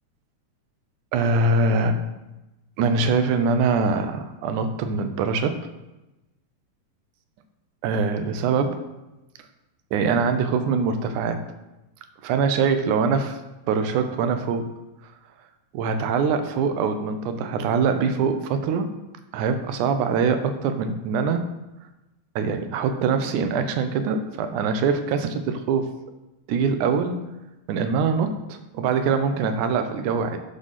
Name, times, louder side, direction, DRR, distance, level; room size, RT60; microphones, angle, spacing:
voice 1, 1.1-2.0 2.8-5.6 7.8-8.8 9.9-11.4 12.2-13.4 13.7-14.7 15.7-18.9 19.3-21.5 22.4-25.9 26.5-27.3 27.7-30.4, right 5 dB, 80° right, 8 dB, 2.2 m, -23 dB
9.7 x 3.9 x 5.6 m, 1.0 s
omnidirectional pair, 3.5 m